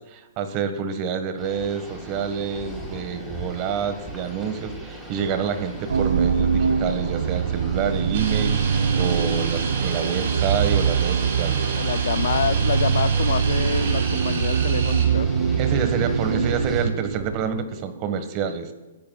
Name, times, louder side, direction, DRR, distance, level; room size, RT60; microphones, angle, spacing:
voice 1, 0.1-11.6 15.6-18.7, right 7 dB, 35° right, 9 dB, 1.6 m, -28 dB
sound 1, 1.4-16.8, right 1 dB, 5° right, 3.6 m, -39 dB
sound 2, 5.9-17.8, right 7 dB, 85° right, 0.8 m, -23 dB
sound 3, 8.1-15.1, right 5 dB, 60° right, 4.1 m, -32 dB
voice 2, 11.8-15.3, left 8 dB, 65° left, 18 dB, 0.4 m, -27 dB
20.5 x 14.0 x 2.4 m, 1.2 s
hypercardioid pair, 145°, 0 cm